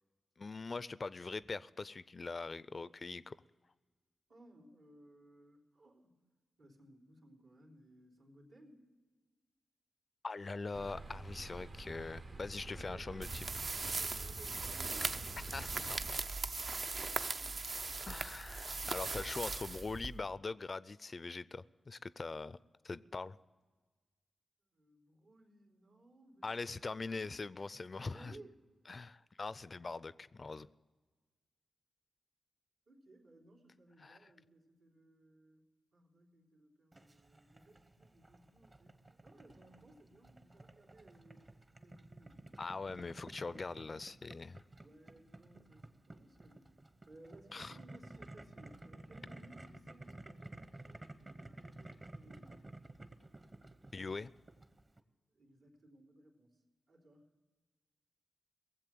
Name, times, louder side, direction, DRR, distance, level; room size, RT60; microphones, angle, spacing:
voice 1, 0.4-3.4 10.2-13.5 15.5-16.0 18.1-22.6 22.8-23.4 26.4-28.3 28.9-30.7 34.0-34.2 42.6-44.6 47.5-47.7 53.9-54.3, left 3 dB, 50° left, 0.4 m, -42 dB
voice 2, 4.3-6.2 6.6-8.9 12.6-13.3 13.7-15.2 15.7-16.1 16.8-17.6 24.7-27.4 27.9-28.5 32.9-35.6 35.9-43.2 44.8-46.8 47.1-52.6 55.3-56.6 56.9-57.3, right 1 dB, 90° right, 3.4 m, -61 dB
sound 1, 10.7-16.1, right 2 dB, 75° right, 1.6 m, -48 dB
sound 2, 13.2-20.4, right 3 dB, 55° right, 0.5 m, -39 dB
Boiling, 36.9-55.0, right 2 dB, 40° right, 1.0 m, -54 dB
18.5 x 7.6 x 7.6 m
supercardioid pair, 40°, 0 cm